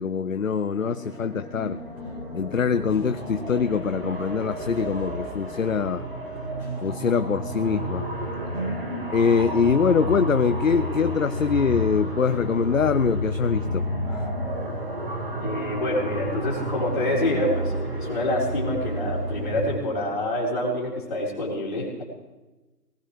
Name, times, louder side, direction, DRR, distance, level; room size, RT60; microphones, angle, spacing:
voice 1, 0.0-1.8 2.3-6.1 6.8-8.1 9.1-14.3, left 6 dB, 55° left, 11 dB, 0.5 m, -24 dB
sound 1, 0.8-19.7, equal, 35° right, 1.7 m, -31 dB
sound 2, 1.6-8.0, left 1 dB, 5° left, 4.0 m, -43 dB
voice 2, 15.4-22.0, left 1 dB, 30° left, -3 dB, 4.4 m, -27 dB
19.0 x 17.5 x 3.4 m, 1.1 s
figure-of-eight pair, 170°, 49 cm